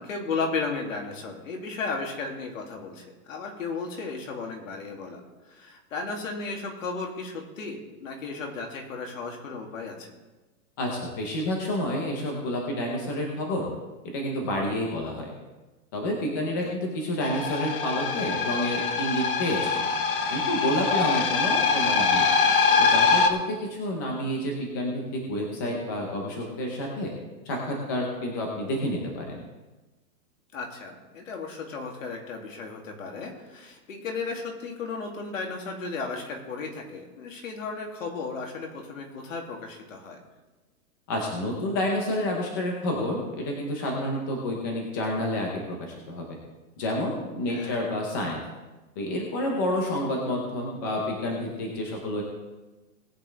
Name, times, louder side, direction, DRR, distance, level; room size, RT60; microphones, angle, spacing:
voice 1, 0.0-10.2 16.6-16.8 30.5-40.2 47.5-47.7, left 4 dB, 60° left, 1 dB, 2.8 m, -35 dB
voice 2, 10.8-13.7 14.1-15.3 15.9-19.8 20.3-22.3 22.8-27.1 27.4-29.4 41.1-46.4 46.8-48.4 49.0-52.2, left 1 dB, 15° left, 0 dB, 0.7 m, -29 dB
sound 1, 17.2-23.3, left 5 dB, 35° left, 1.0 m, -23 dB
19.0 x 8.7 x 3.4 m, 1.1 s
hypercardioid pair, 180°, 44 cm